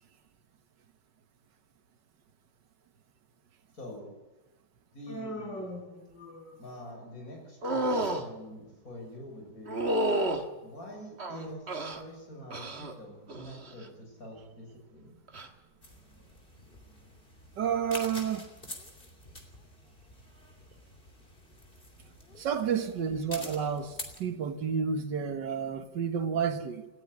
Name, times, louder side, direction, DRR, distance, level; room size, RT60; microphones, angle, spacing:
voice 1, 3.7-4.1 4.9-5.7 6.6-9.8 10.6-15.2, left 1 dB, 50° left, 7.3 m, -45 dB
Human voice, 5.1-6.8, equal, 85° left, 6.0 m, -41 dB
sound 1, 7.6-8.2 9.7-10.4 11.2-12.0 12.5-12.9 13.3-13.7 15.3-15.5, right 1 dB, 35° right, 1.8 m, -30 dB
sound 2, 15.8-24.2, left 2 dB, 30° left, 3.2 m, -47 dB
voice 2, 17.6-18.5 22.4-26.9, right 7 dB, 75° right, 2.0 m, -30 dB
19.0 x 14.5 x 9.7 m
omnidirectional pair, 1.9 m